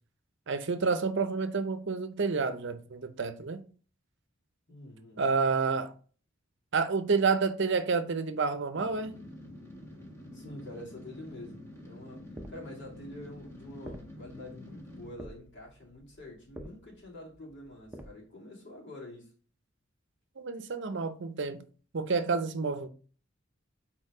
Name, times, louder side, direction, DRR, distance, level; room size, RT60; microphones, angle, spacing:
voice 1, 0.5-3.6 5.2-5.9 6.7-9.2 20.4-21.6 21.9-22.9, right 4 dB, 60° right, 0.6 m, -29 dB
voice 2, 4.7-5.2 10.3-19.3, left 1 dB, 60° left, 2.6 m, -47 dB
sound 1, 8.7-15.1, left 1 dB, 15° left, 1.3 m, -48 dB
sound 2, 12.4-18.1, equal, 10° right, 0.7 m, -49 dB
4.5 x 4.3 x 4.8 m
head